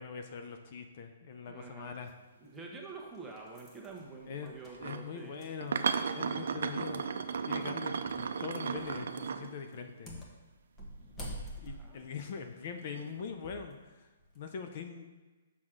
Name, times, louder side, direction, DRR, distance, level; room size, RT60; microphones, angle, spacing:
voice 1, 0.0-2.1 4.2-4.5 4.8-7.1 7.4-10.2 11.6-14.1 14.3-15.1, left 6 dB, 45° left, 6 dB, 0.5 m, -42 dB
voice 2, 1.5-1.9 2.4-5.5 11.3-12.1, right 4 dB, 10° right, -2 dB, 1.0 m, -48 dB
sound 1, 2.1-2.2 2.9-6.4 6.7-6.8 8.1-8.3 8.7-9.0 9.7-13.7 14.2-14.4, equal, 15° left, 1.1 m, -47 dB
sound 2, 4.7-5.0 5.6-9.9 12.9-13.2, right 6 dB, 75° right, 0.4 m, -35 dB
6.2 x 5.9 x 3.8 m, 1.3 s
hypercardioid pair, 155°, 0 cm